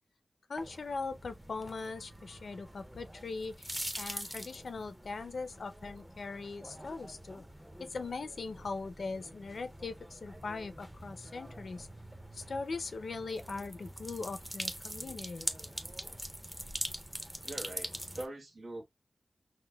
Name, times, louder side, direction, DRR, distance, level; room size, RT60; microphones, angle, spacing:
voice 1, 0.5-3.7 4.0-7.4 7.8-11.9 12.3-15.5, left 4 dB, 80° left, 0.5 m, -40 dB
sound 1, 0.6-18.3, right 1 dB, 10° right, 0.6 m, -44 dB
voice 2, 17.4-18.8, right 1 dB, 90° right, 1.4 m, -43 dB
5.6 x 2.1 x 2.2 m
wide cardioid pair, 70°, 0 cm